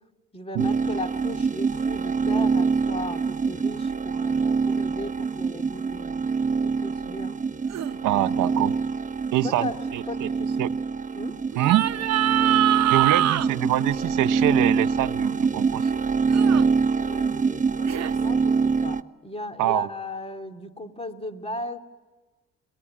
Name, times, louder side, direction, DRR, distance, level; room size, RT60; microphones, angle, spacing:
voice 1, 0.3-6.3 6.6-7.4 8.1-8.2 9.4-9.8 10.1-10.6 11.1-11.4 16.9-21.8, left 2 dB, 20° left, 6 dB, 2.8 m, -37 dB
sound 1, 0.6-19.0, right 5 dB, 25° right, 1.0 m, -25 dB
sound 2, 7.7-8.0 11.5-13.5 16.3-16.6 17.9-18.1, right 13 dB, 60° right, 1.0 m, -23 dB
voice 2, 8.0-8.8 9.3-10.3 10.6-10.7 11.6-11.9 12.9-15.9 19.6-19.9, right 15 dB, 85° right, 11 dB, 0.8 m, -25 dB
30.0 x 21.5 x 8.8 m, 1.2 s
cardioid pair, 90°, 30 cm